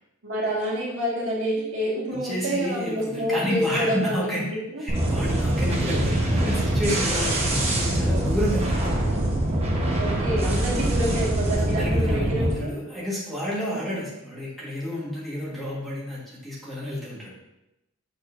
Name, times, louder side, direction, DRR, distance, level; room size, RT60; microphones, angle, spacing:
voice 1, 0.2-4.3 10.0-12.8 13.7-14.0, equal, 65° right, -5 dB, 1.9 m, -28 dB
voice 2, 2.2-4.5 4.8-8.9 11.6-17.3, equal, ahead, -8 dB, 1.5 m, -30 dB
sound 1, 4.9-12.5, right 1 dB, 30° right, 1.1 m, -24 dB
6.7 x 6.3 x 2.6 m, 0.91 s
head